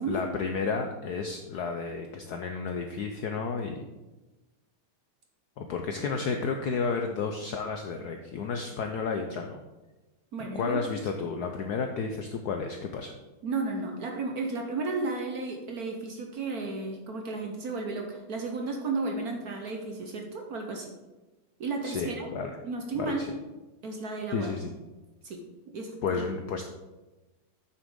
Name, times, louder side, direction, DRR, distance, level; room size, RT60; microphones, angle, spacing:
voice 1, 0.1-3.8 5.6-9.6 10.5-13.1 21.8-22.5 22.9-23.3 24.3-24.7 26.0-26.7, left 5 dB, 75° left, 4 dB, 0.9 m, -32 dB
voice 2, 10.3-10.8 13.4-20.9 21.6-22.3 22.6-23.3 23.8-24.5 25.2-25.4 25.7-26.2, right 3 dB, 55° right, 2 dB, 1.1 m, -33 dB
8.7 x 6.8 x 3.7 m, 1.1 s
omnidirectional pair, 2.3 m